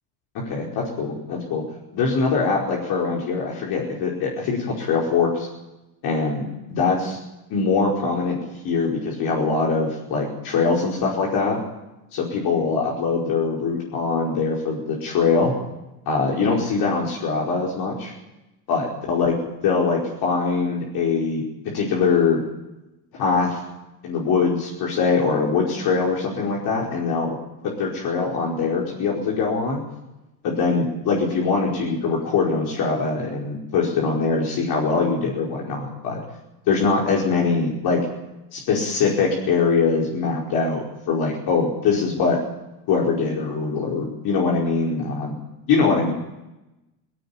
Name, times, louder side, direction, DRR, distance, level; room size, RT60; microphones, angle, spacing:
voice 1, 0.4-1.6 1.9-5.5 6.0-7.2 7.5-8.4 8.6-11.6 12.1-15.5 16.0-18.1 18.7-19.3 19.6-21.4 21.7-22.4 23.1-23.6 24.0-27.4 27.8-29.8 30.4-36.2 36.7-38.0 38.5-42.4 42.9-45.3 45.7-46.1, left 4 dB, 50° left, -3 dB, 5.1 m, -22 dB
18.5 x 17.0 x 8.7 m, 0.96 s
supercardioid pair, 125°, 46 cm